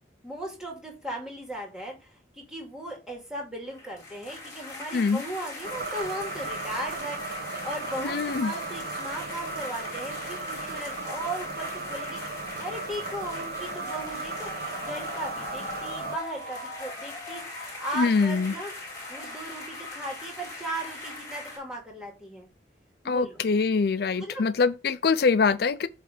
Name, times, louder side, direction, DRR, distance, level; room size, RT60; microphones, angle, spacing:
voice 1, 0.2-12.2 12.6-14.5 14.8-17.4 17.8-18.7 19.1-22.5 23.0-23.4 24.2-24.5, right 1 dB, 5° right, 2.3 m, -37 dB
sound 1, 3.7-21.6, left 2 dB, 20° left, 3.5 m, -40 dB
sound 2, 5.6-16.2, right 3 dB, 55° right, 1.1 m, -36 dB
voice 2, 8.0-8.5 17.9-18.5 23.0-25.9, left 4 dB, 55° left, 0.4 m, -24 dB
8.2 x 3.3 x 5.0 m
head